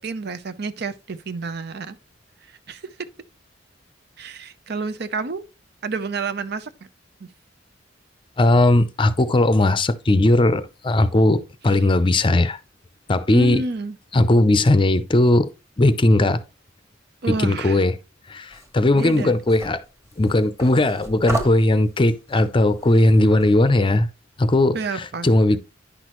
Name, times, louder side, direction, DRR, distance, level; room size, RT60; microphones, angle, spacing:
voice 1, 0.0-2.0 2.5-2.9 4.2-5.4 5.8-6.7 7.2-7.3 11.7-11.8 13.3-14.0 17.2-17.8 18.9-19.4 24.7-25.3, right 4 dB, 60° right, 0.7 m, -29 dB
voice 2, 8.4-12.6 13.1-13.6 14.1-15.5 15.8-16.4 17.3-17.9 18.3-19.8 20.2-24.1 24.4-25.6, left 1 dB, 25° left, 0.6 m, -18 dB
sound 1, 18.5-23.6, right 1 dB, 15° right, 1.5 m, -35 dB
10.0 x 6.1 x 3.1 m
head